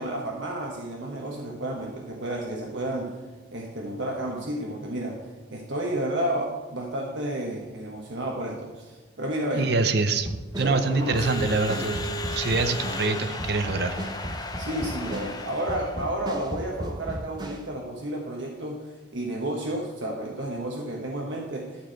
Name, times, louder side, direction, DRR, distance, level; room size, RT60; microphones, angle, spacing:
voice 1, 0.0-3.2 3.5-9.7 10.6-11.2 14.6-21.9, right 1 dB, 75° right, 0 dB, 1.2 m, -31 dB
voice 2, 9.6-10.3 10.6-14.0, right 3 dB, 55° right, 8 dB, 0.7 m, -25 dB
sound 1, 10.2-17.7, equal, 20° right, 1.0 m, -35 dB
Crowd / Alarm, 10.6-16.1, left 2 dB, 20° left, 0.8 m, -35 dB
12.5 x 4.4 x 7.6 m, 1.3 s
head